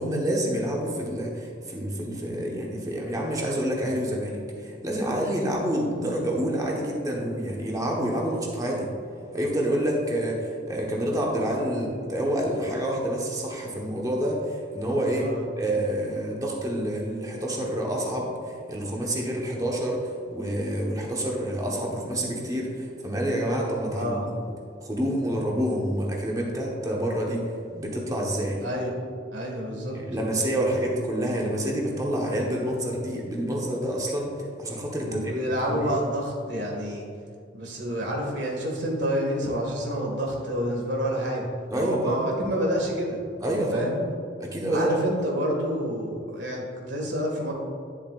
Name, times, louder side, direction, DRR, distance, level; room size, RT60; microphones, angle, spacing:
voice 1, 0.0-8.9 9.3-15.3 15.6-20.0 20.3-24.2 24.8-27.4 27.7-28.6 29.9-34.3 34.6-35.3 35.7-35.8 41.7-42.2 43.4-43.9 44.4-44.9, right 1 dB, 20° right, -2 dB, 1.1 m, -28 dB
voice 2, 29.3-30.0 35.0-37.1 37.5-41.5 41.8-43.2 43.5-44.0 44.7-47.5, equal, 80° right, -1 dB, 1.8 m, -28 dB
10.0 x 7.1 x 2.5 m, 2.4 s
head